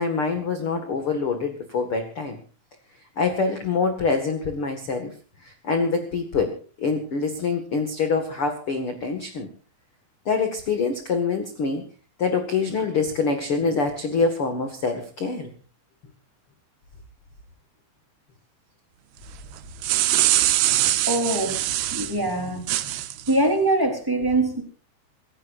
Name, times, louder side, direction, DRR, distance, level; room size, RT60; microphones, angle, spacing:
voice 1, 0.0-2.4 3.1-5.1 5.4-9.5 10.2-11.8 12.2-15.5, left 4 dB, 50° left, 6 dB, 1.7 m, -25 dB
sound 1, 19.6-22.1 22.7-23.3, right 15 dB, 75° right, 2.6 m, -22 dB
voice 2, 21.1-21.6 21.9-22.7 23.3-24.6, right 2 dB, 5° right, 3 dB, 3.2 m, -23 dB
27.0 x 15.0 x 2.6 m, 0.40 s
omnidirectional pair, 5.4 m